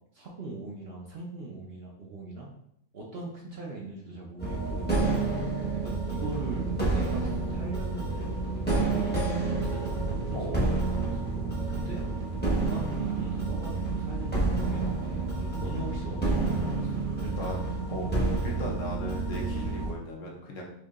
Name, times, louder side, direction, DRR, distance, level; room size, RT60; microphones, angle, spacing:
voice 1, 0.1-2.5 2.9-4.9 5.7-8.3 8.7-12.2 12.6-15.3 15.6-17.9, right 2 dB, 55° right, -3 dB, 0.7 m, -41 dB
sound 1, 4.4-19.9, right 3 dB, 10° left, 0.7 m, -29 dB
voice 2, 5.0-5.6 10.3-10.7 15.4-15.6 17.3-17.6 17.9-18.1 18.4-20.6, left 1 dB, 65° left, -1 dB, 1.1 m, -38 dB
4.5 x 2.7 x 2.4 m, 0.74 s
omnidirectional pair, 1.5 m